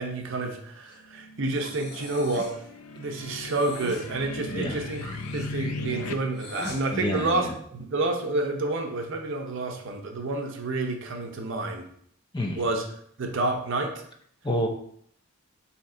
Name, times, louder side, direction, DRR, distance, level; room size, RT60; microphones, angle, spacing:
voice 1, 0.0-2.6 3.0-11.9 12.6-12.8 13.2-13.9, right 2 dB, 60° right, 3 dB, 0.6 m, -29 dB
sound 1, 1.2-6.1, left 2 dB, 90° left, 0.5 m, -38 dB
Breathing, 1.6-2.6 3.4-4.1 4.9-6.8, left 2 dB, 50° left, 0.9 m, -41 dB
voice 2, 6.9-7.5 12.3-12.6 14.4-14.7, equal, 20° left, 2 dB, 0.5 m, -28 dB
3.8 x 2.9 x 4.3 m, 0.64 s
head